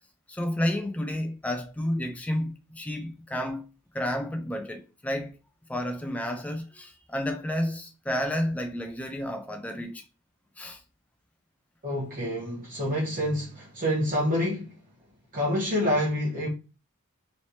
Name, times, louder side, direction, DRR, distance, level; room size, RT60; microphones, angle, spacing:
voice 1, 0.3-3.7 3.9-5.4 5.7-10.0 10.6-10.8, left 1 dB, 5° left, 0.4 m, -31 dB
voice 2, 11.8-14.8 15.3-16.5, equal, 40° right, 1.2 m, -27 dB
3.1 x 3.1 x 2.7 m
head